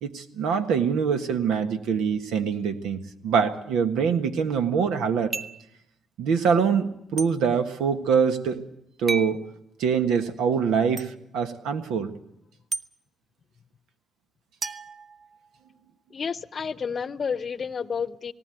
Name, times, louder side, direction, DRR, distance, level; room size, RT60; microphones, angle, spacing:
voice 1, 0.0-5.3 6.2-8.6 9.0-9.4 9.8-12.1, right 6 dB, 90° right, 8 dB, 1.5 m, -24 dB
sound 1, 5.3-5.7 7.2-7.3 9.1-9.4 11.0-11.1 12.7-12.9 14.6-15.7, right 4 dB, 35° right, 0.8 m, -33 dB
voice 2, 16.1-18.3, left 6 dB, 40° left, 16 dB, 0.8 m, -30 dB
18.5 x 18.0 x 9.2 m, 0.78 s
cardioid pair, 90°, 0 cm